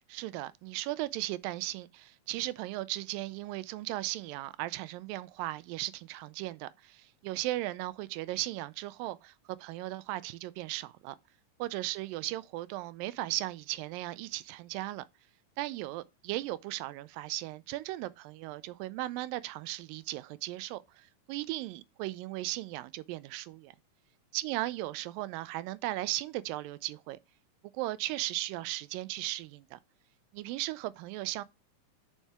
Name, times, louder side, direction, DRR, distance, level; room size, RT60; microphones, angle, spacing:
voice 1, 0.1-11.2 11.6-15.0 15.6-23.7 24.3-27.2 27.7-29.8 30.3-31.4, right 17 dB, 90° right, 2.3 m, -37 dB
7.3 x 5.5 x 3.4 m
omnidirectional pair, 3.9 m